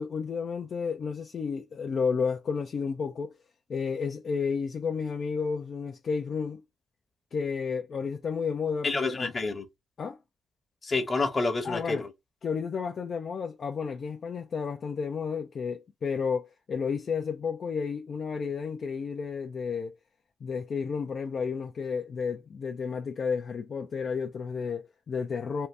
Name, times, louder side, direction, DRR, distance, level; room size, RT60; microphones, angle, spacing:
voice 1, 0.0-3.4 3.7-6.6 7.3-9.3 10.0-10.2 11.6-12.0 12.4-20.0 20.4-25.7, left 5 dB, 45° left, 0.4 m, -32 dB
voice 2, 8.8-9.6 10.8-12.1, left 3 dB, 25° left, 0.8 m, -28 dB
2.6 x 2.5 x 3.2 m
cardioid pair, 110°, 0 cm